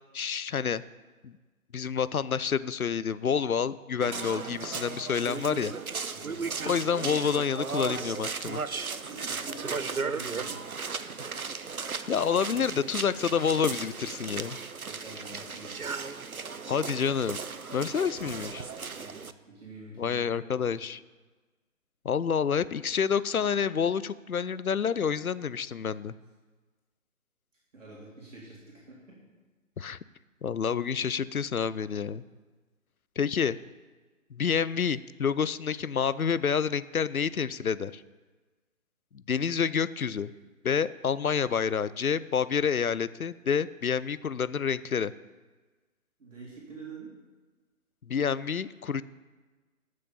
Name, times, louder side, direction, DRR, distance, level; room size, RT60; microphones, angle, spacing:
voice 1, 0.1-0.8 1.2-1.3 1.7-5.7 6.6-8.6 12.1-14.6 16.7-17.4 17.7-18.6 20.0-21.0 22.0-26.1 29.8-30.0 30.4-32.2 33.2-33.6 34.3-38.0 39.3-40.3 40.6-45.1 48.1-49.0, left 7 dB, 80° left, 16 dB, 0.7 m, -28 dB
sound 1, 4.0-19.3, right 5 dB, 85° right, 0.8 m, -36 dB
voice 2, 6.1-6.5 9.0-10.7 14.1-14.2 14.5-15.9 18.9-20.7 27.7-29.2 46.2-47.1, right 3 dB, 60° right, -5 dB, 3.9 m, -47 dB
12.5 x 6.6 x 7.0 m, 1.3 s
figure-of-eight pair, 140°, 42 cm